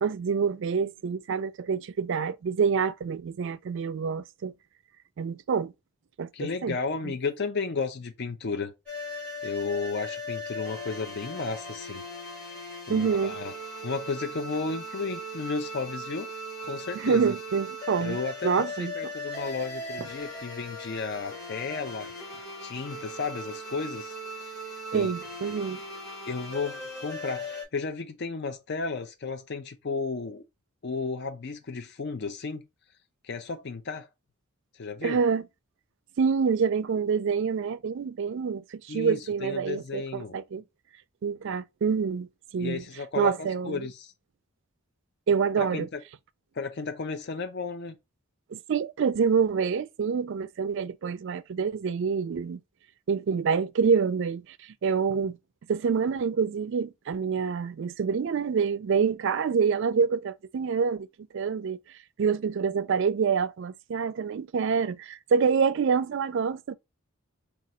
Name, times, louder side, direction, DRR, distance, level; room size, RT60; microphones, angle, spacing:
voice 1, 0.0-4.5 5.2-5.7 6.2-6.8 7.0-7.1 12.9-13.4 16.9-18.2 18.4-18.9 20.0-20.1 24.9-25.8 35.0-35.4 36.2-40.6 41.2-42.3 42.5-42.8 43.2-43.9 45.3-45.9 48.5-52.6 53.1-55.4 55.7-61.1 61.3-61.8 62.2-66.7, right 6 dB, 55° right, 0.3 m, -27 dB
voice 2, 6.3-8.7 9.4-12.0 12.9-13.5 13.8-16.3 16.7-17.3 18.0-22.1 22.6-24.1 24.9-25.1 26.3-30.4 30.8-32.6 33.2-34.1 34.7-35.2 38.9-40.4 42.6-44.1 45.6-46.0 46.5-48.0, left 4 dB, 50° left, 0.5 m, -33 dB
sound 1, 8.9-27.6, left 1 dB, 5° left, 1.9 m, -38 dB
3.8 x 2.4 x 4.2 m
head